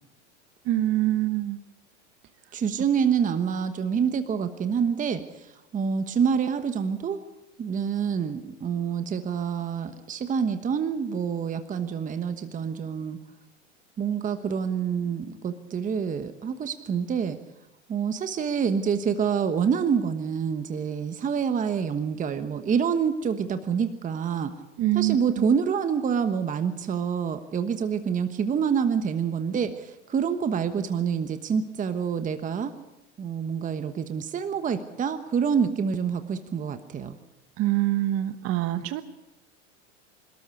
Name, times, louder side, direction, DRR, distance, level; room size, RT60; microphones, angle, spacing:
voice 1, 0.7-1.6 24.8-25.2 37.6-39.0, right 15 dB, 40° right, 11 dB, 1.1 m, -24 dB
voice 2, 2.5-7.2 7.6-13.2 14.0-17.4 17.9-24.5 24.9-32.7 33.2-37.2, right 7 dB, 20° right, 9 dB, 1.2 m, -27 dB
26.5 x 13.0 x 8.3 m, 0.97 s
supercardioid pair, 115°, 35 cm